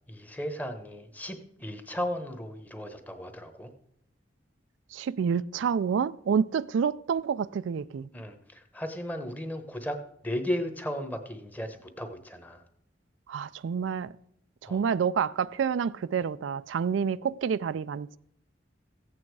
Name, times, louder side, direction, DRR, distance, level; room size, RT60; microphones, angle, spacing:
voice 1, 0.1-3.7 8.1-12.6 14.7-14.8, equal, 10° left, 1.0 m, -35 dB
voice 2, 4.9-8.1 13.3-14.1 14.6-18.2, right 6 dB, 80° right, 0.3 m, -28 dB
15.0 x 8.6 x 4.7 m
head